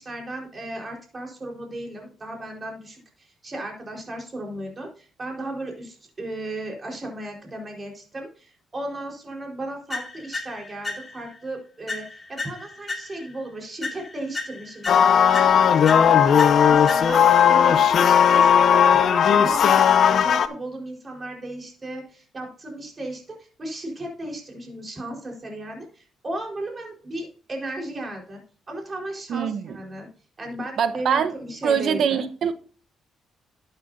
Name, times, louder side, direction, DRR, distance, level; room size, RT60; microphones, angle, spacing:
voice 1, 0.0-19.9 20.2-28.4 28.7-30.1 30.4-32.3, right 1 dB, 30° right, 4.5 m, -35 dB
sound 1, 9.9-11.4 11.9-13.4 13.8-17.4, left 3 dB, 25° left, 2.7 m, -35 dB
Lithuanian anthem sung by an ethnical Lithuanian born abroad, 14.9-20.5, left 8 dB, 60° left, 0.8 m, -16 dB
voice 2, 29.3-29.8 30.8-31.3 31.6-32.5, right 7 dB, 65° right, 1.1 m, -23 dB
12.5 x 8.9 x 2.7 m
cardioid pair, 90°, 0 cm